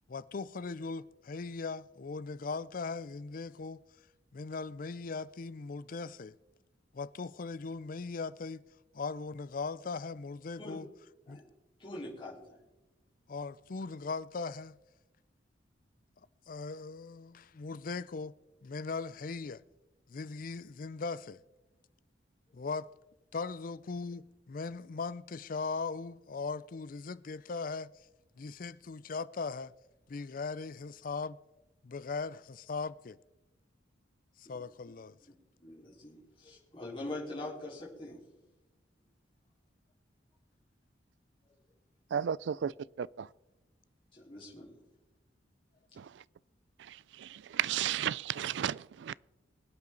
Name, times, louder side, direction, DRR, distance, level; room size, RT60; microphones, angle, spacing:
voice 1, 0.1-3.8 4.3-6.3 6.9-8.6 8.9-10.9 11.3-11.4 13.3-14.8 16.5-18.3 18.6-19.6 20.1-21.4 22.5-22.9 23.3-27.9 28.4-29.7 30.1-31.4 31.8-33.2 34.4-35.2, left 4 dB, 45° left, 0.4 m, -39 dB
voice 2, 11.8-12.6 35.6-38.2 44.1-44.7, left 2 dB, 25° left, 4.3 m, -43 dB
voice 3, 42.1-42.7 43.0-43.3 46.0-46.2 46.8-49.1, right 9 dB, 65° right, 0.3 m, -34 dB
24.5 x 8.5 x 3.9 m
head